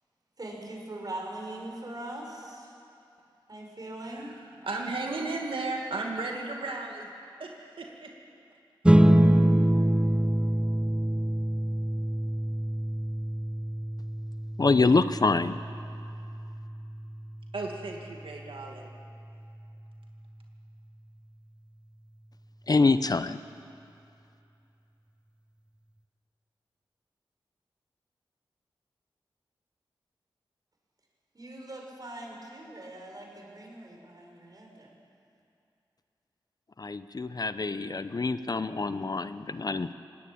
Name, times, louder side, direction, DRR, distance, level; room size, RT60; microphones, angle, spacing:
voice 1, 0.4-2.7 3.5-4.3 31.3-34.9, right 1 dB, 45° right, 0 dB, 5.7 m, -41 dB
voice 2, 4.0-7.1 7.4-8.1 17.5-18.9, right 3 dB, 80° right, 0 dB, 2.3 m, -35 dB
sound 1, 8.8-19.6, right 1 dB, 10° right, 1.1 m, -26 dB
voice 3, 14.6-15.6 22.7-23.4 36.8-39.9, left 3 dB, 45° left, 12 dB, 0.8 m, -25 dB
19.5 x 18.5 x 8.7 m, 2.6 s
cardioid pair, 55°, 9 cm